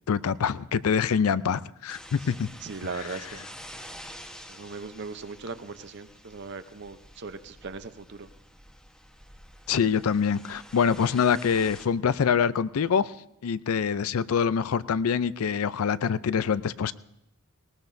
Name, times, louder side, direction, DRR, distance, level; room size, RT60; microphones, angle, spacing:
voice 1, 0.1-2.5 3.1-3.2 9.7-13.1 13.4-16.9, left 6 dB, 90° left, 0.4 m, -25 dB
sound 1, 1.9-11.9, equal, 5° left, 1.1 m, -48 dB
voice 2, 2.3-3.5 4.5-8.3, right 4 dB, 55° right, 0.7 m, -39 dB
19.0 x 19.0 x 2.6 m
head